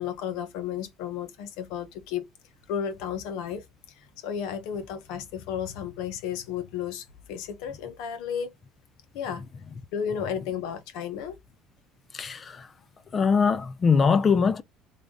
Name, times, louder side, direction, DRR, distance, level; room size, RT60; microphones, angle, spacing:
voice 1, 0.0-2.3 2.7-3.6 4.0-8.5 9.1-9.5 9.9-11.4, left 8 dB, 75° left, 1.0 m, -33 dB
voice 2, 12.1-12.7 13.1-14.6, left 5 dB, 25° left, 0.4 m, -22 dB
3.4 x 2.4 x 3.8 m
cardioid pair, 135°, 0 cm